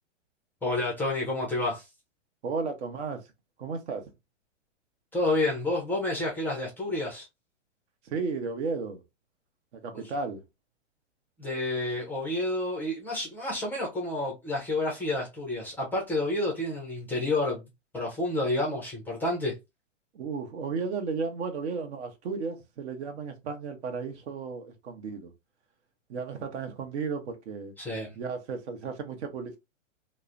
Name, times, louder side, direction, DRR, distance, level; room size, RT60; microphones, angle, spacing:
voice 1, 0.6-1.8 5.1-7.3 9.9-10.1 11.4-17.7 17.9-19.5 27.8-28.1, left 2 dB, 5° left, 0.4 m, -29 dB
voice 2, 2.4-3.2 3.6-4.1 8.0-9.0 9.7-10.4 20.1-25.3 26.1-27.7 28.1-29.6, right 4 dB, 60° right, 0.9 m, -34 dB
3.0 x 2.0 x 2.4 m
hypercardioid pair, 135°, 37 cm